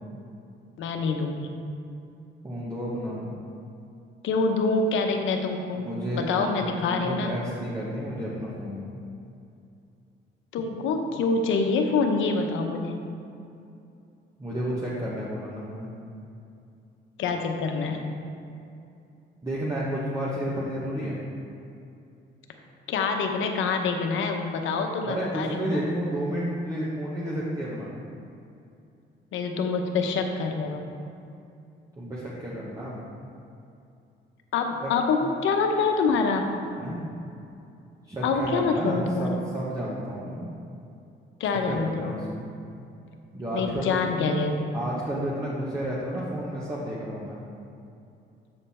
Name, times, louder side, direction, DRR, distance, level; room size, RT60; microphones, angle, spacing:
voice 1, 0.8-1.5 4.2-5.9 6.1-7.3 10.5-13.0 17.2-18.1 22.9-25.9 29.3-30.8 34.5-36.5 38.2-39.4 41.4-42.2 43.5-44.7, left 4 dB, 80° left, 4 dB, 0.8 m, -26 dB
voice 2, 2.4-3.3 5.8-9.0 14.4-15.9 19.4-21.2 25.0-27.9 31.9-33.0 34.8-34.9 36.8-37.0 38.1-40.5 41.7-42.5 43.3-44.0 44.7-47.4, equal, 15° right, -7 dB, 1.3 m, -31 dB
7.9 x 5.4 x 4.3 m, 2.6 s
cardioid pair, 90°, 20 cm